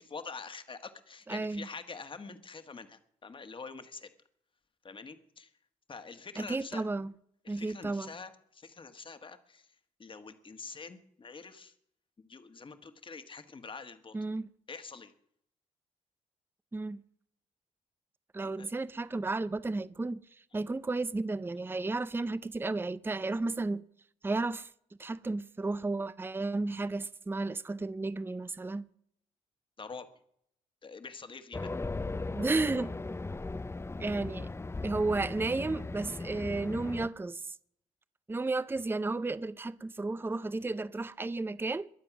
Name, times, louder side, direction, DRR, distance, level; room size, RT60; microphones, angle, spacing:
voice 1, 0.0-4.1 4.8-5.5 5.9-6.9 7.4-9.7 10.0-11.7 12.2-14.3 14.7-15.1 18.4-18.7 29.8-30.1 30.8-31.7, left 4 dB, 35° left, 1.6 m, -46 dB
voice 2, 1.3-1.7 6.4-7.1 7.5-8.1 14.1-14.5 16.7-17.0 18.3-20.2 20.5-23.8 24.2-24.7 25.0-28.8 32.3-32.9 34.0-34.5 34.8-37.5 38.3-41.9, right 3 dB, 15° right, 0.6 m, -33 dB
Race car auto racing, 31.5-37.1, left 3 dB, 20° left, 0.7 m, -38 dB
22.5 x 7.7 x 6.1 m
supercardioid pair, 65°, 14 cm